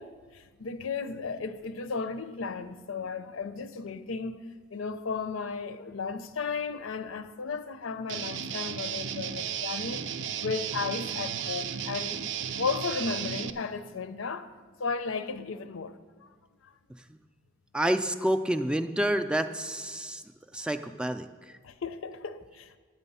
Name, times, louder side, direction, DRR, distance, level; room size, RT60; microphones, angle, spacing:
voice 1, 0.0-4.4 4.7-10.0 10.4-14.5 14.8-16.3 16.6-16.7 21.6-22.8, left 4 dB, 85° left, 0.6 m, -35 dB
Guitar, 8.1-13.5, right 8 dB, 65° right, 0.5 m, -34 dB
voice 2, 17.7-20.2 20.5-21.6, right 1 dB, 5° right, 0.3 m, -29 dB
9.0 x 9.0 x 5.5 m
head